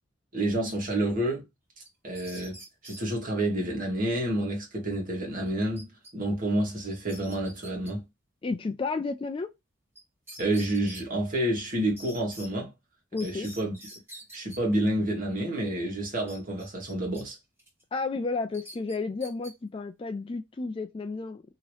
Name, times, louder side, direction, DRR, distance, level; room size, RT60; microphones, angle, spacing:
voice 1, 0.3-1.4 2.0-8.0 10.4-12.7 13.2-13.8 14.3-17.4, right 1 dB, 45° right, 1.4 m, -29 dB
sound 1, 1.9-3.0 5.8-6.1 6.4-6.5 6.9-7.9 10.0-10.1 10.3-11.0 12.0-12.5 13.2-14.6 16.3-17.2 17.6-17.8 18.5-19.5, equal, 10° right, 1.3 m, -46 dB
voice 2, 8.4-9.5 13.1-13.5 17.9-21.4, left 3 dB, 25° left, 0.3 m, -32 dB
2.9 x 2.8 x 3.1 m
head